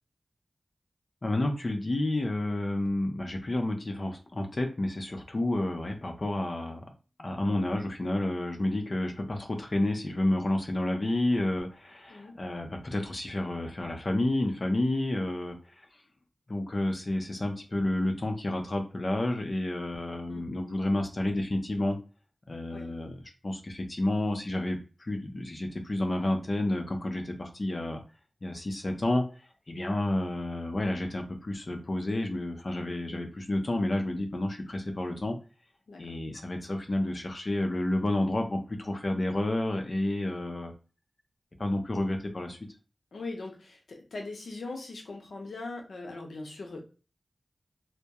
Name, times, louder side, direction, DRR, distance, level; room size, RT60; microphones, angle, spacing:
voice 1, 1.2-6.8 7.2-15.9 16.5-22.0 22.5-28.0 28.4-29.2 29.7-35.4 36.0-40.7 41.6-42.6, left 1 dB, 50° left, 4 dB, 0.6 m, -30 dB
voice 2, 43.1-46.8, left 3 dB, 90° left, 1 dB, 0.7 m, -40 dB
2.2 x 2.1 x 2.8 m, 0.34 s
cardioid pair, 50°, 0 cm